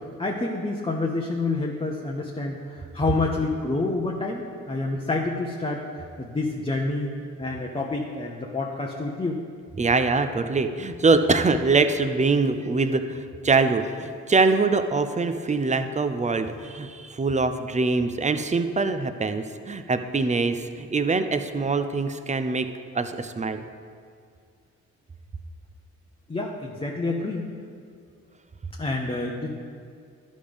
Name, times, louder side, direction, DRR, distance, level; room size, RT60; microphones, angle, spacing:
voice 1, 0.2-9.4 26.3-27.4 28.8-29.6, left 2 dB, 20° left, -1 dB, 0.9 m, -28 dB
voice 2, 9.8-22.7 22.9-23.6, right 3 dB, 25° right, 9 dB, 0.6 m, -23 dB
11.0 x 5.3 x 5.2 m, 2.3 s
cardioid pair, 65°, 30 cm